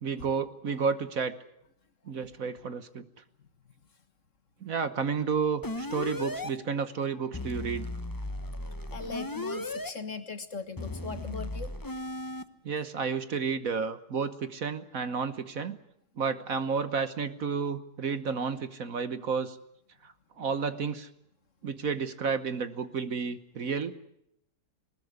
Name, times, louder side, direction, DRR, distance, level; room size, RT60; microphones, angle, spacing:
voice 1, 0.0-1.3 2.1-3.0 4.6-7.9 12.6-15.8 16.2-19.6 20.0-21.1 21.6-24.0, right 5 dB, 55° right, 12 dB, 1.4 m, -31 dB
sound 1, 5.6-6.5 7.3-9.9 10.8-12.4, left 2 dB, 15° left, 0.7 m, -36 dB
voice 2, 8.9-11.7, left 4 dB, 45° left, 9 dB, 1.9 m, -39 dB
20.5 x 20.0 x 9.6 m, 0.76 s
omnidirectional pair, 1.9 m